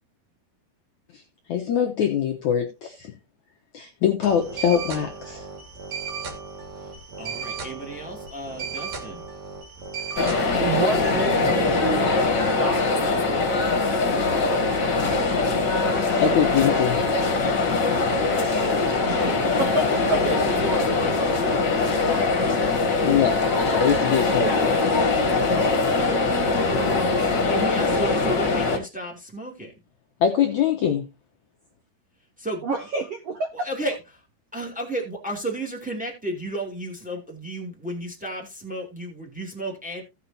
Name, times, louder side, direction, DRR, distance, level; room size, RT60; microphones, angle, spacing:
voice 1, 1.5-3.1 3.7-5.4 16.2-17.0 23.0-24.9 30.2-31.1, left 8 dB, 75° left, 1.7 m, -23 dB
sound 1, 4.2-10.8, right 5 dB, 50° right, 3.4 m, -35 dB
voice 2, 6.8-9.3 27.5-29.7 32.4-32.6 33.6-33.9 34.5-40.0, right 1 dB, 5° right, 1.4 m, -33 dB
voice 3, 10.0-13.5 19.0-22.4 32.6-33.7, right 3 dB, 75° right, 1.4 m, -30 dB
sound 2, 10.2-28.8, left 3 dB, 40° left, 1.8 m, -22 dB
16.5 x 6.7 x 2.8 m
omnidirectional pair, 4.7 m